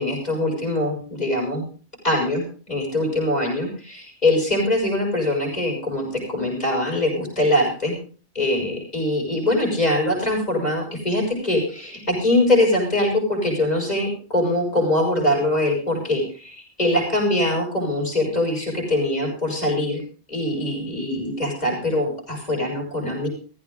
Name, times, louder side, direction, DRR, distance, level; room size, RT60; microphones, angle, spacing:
voice 1, 0.0-1.7 2.0-7.9 8.3-20.0 20.3-23.3, left 1 dB, 40° left, 0 dB, 6.7 m, -23 dB
15.5 x 15.0 x 3.9 m, 0.39 s
omnidirectional pair, 1.1 m